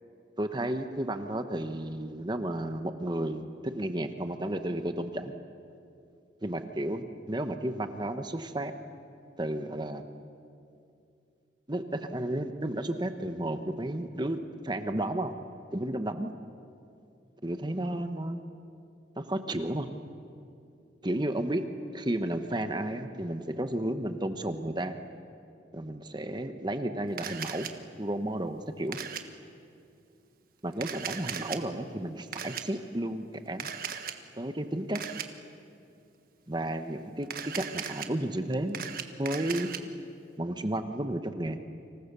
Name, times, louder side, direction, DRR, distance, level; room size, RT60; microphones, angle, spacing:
voice 1, 0.4-5.3 6.4-8.7 9.4-10.0 11.7-14.4 14.6-15.3 15.7-16.3 17.4-18.4 19.2-19.9 21.0-21.7 21.9-25.0 25.7-27.7 28.0-29.0 30.6-33.7 34.4-35.0 36.5-38.8 39.2-39.7 40.4-41.6, right 1 dB, 25° right, 8 dB, 1.1 m, -32 dB
Camera, 27.2-27.7 28.9-29.2 30.7-31.6 32.3-32.6 33.6-34.2 34.9-35.3 37.2-38.1 38.5-39.8, right 7 dB, 50° right, 1.5 m, -37 dB
30.0 x 26.5 x 6.9 m, 2.5 s
head